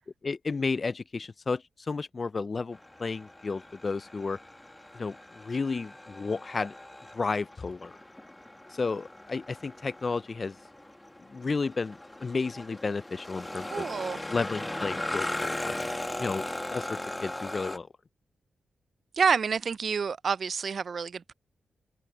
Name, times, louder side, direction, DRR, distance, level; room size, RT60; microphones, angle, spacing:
voice 1, 0.2-4.4 4.9-6.7 7.1-7.9 8.7-10.6 11.2-13.8 14.3-15.8 16.2-17.9, left 4 dB, 40° left, 0.4 m, -32 dB
sound 1, 2.7-17.8, left 1 dB, 15° left, 1.9 m, -38 dB
voice 2, 13.7-14.2 19.2-21.3, right 6 dB, 60° right, 0.3 m, -28 dB
cardioid pair, 85°, 0 cm